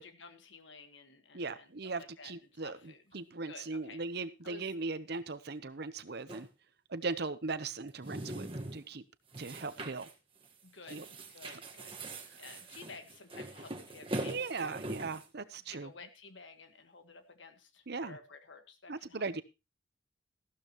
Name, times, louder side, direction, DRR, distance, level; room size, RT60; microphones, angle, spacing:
voice 1, 0.0-4.0 4.4-4.7 10.6-14.8 15.7-19.4, left 4 dB, 75° left, 7 dB, 1.6 m, -53 dB
voice 2, 1.3-2.8 3.1-6.5 6.9-9.0 9.4-10.1 10.9-11.0 14.3-15.9 17.9-18.2 18.9-19.4, right 3 dB, 60° right, 13 dB, 0.9 m, -38 dB
sound 1, 6.3-6.5 7.9-8.9 9.3-10.1 10.4-10.6 10.9-15.3, right 1 dB, 30° right, 1.4 m, -42 dB
14.5 x 12.0 x 3.0 m, 0.28 s
head